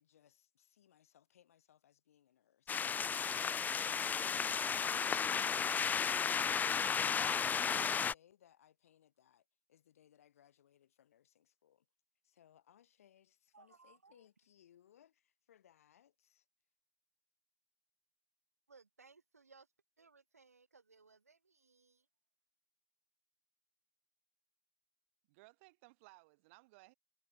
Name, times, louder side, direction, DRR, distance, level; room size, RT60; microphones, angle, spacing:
voice 1, 0.0-6.0 6.3-11.9 12.2-16.5, left 10 dB, 75° left, 5.8 m, -67 dB
sound 1, 2.7-8.1, left 6 dB, 20° left, 0.4 m, -34 dB
voice 2, 13.5-14.2 18.7-19.7 20.0-22.1, right 4 dB, 85° right, 6.2 m, -64 dB
voice 3, 25.3-26.9, right 24 dB, 60° right, 3.4 m, -61 dB
figure-of-eight pair, 75°, 8 cm